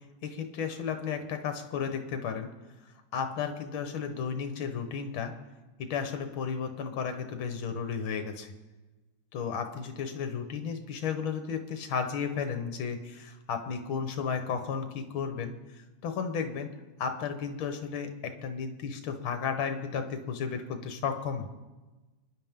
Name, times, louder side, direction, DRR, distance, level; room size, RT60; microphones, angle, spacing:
voice 1, 0.2-2.5 3.1-5.3 5.8-8.5 9.3-15.5 16.0-16.7 17.0-21.5, left 6 dB, 70° left, 6 dB, 2.0 m, -33 dB
27.5 x 10.5 x 3.7 m, 1.2 s
omnidirectional pair, 2.4 m